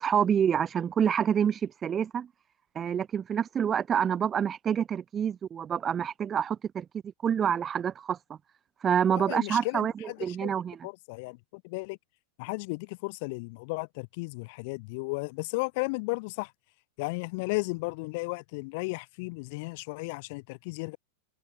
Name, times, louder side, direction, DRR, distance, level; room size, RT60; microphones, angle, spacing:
voice 1, 0.0-2.3 2.8-6.9 7.2-8.4 8.8-10.9, right 8 dB, 25° right, 0.6 m, -27 dB
voice 2, 9.1-10.5 10.8-12.0 12.4-16.5 17.0-21.0, left 27 dB, 50° left, 2.9 m, -34 dB
figure-of-eight pair, 95°, 0 cm